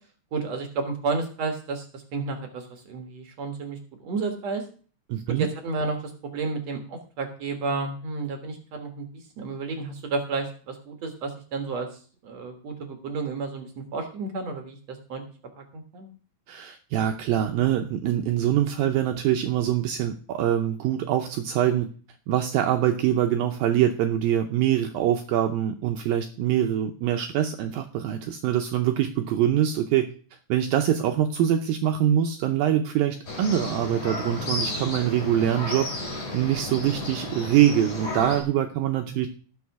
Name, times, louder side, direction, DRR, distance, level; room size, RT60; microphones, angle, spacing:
voice 1, 0.3-4.6 5.3-15.2 15.6-16.1 34.3-34.6 39.1-39.2, right 4 dB, 55° right, 4 dB, 1.9 m, -32 dB
voice 2, 5.1-5.5 16.5-21.9 22.3-30.1 30.5-35.9 36.3-39.3, right 11 dB, 80° right, 5 dB, 2.1 m, -24 dB
sound 1, 33.3-38.4, left 2 dB, 35° left, 5.0 m, -33 dB
18.0 x 6.3 x 4.7 m, 0.42 s
omnidirectional pair, 4.9 m